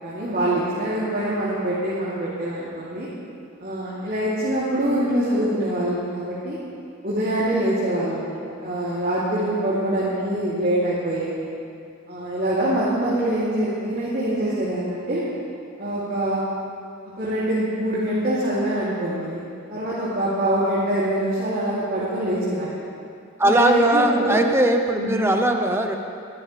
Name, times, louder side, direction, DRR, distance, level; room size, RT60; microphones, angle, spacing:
voice 1, 0.0-3.1 3.6-6.6 7.0-11.5 12.1-15.2 15.8-16.4 17.2-19.4 19.7-22.8 23.4-24.4 25.0-25.2, right 1 dB, 40° right, -10 dB, 3.1 m, -24 dB
voice 2, 23.4-26.0, right 1 dB, 10° right, 4 dB, 0.8 m, -20 dB
23.0 x 13.0 x 3.4 m, 2.4 s
head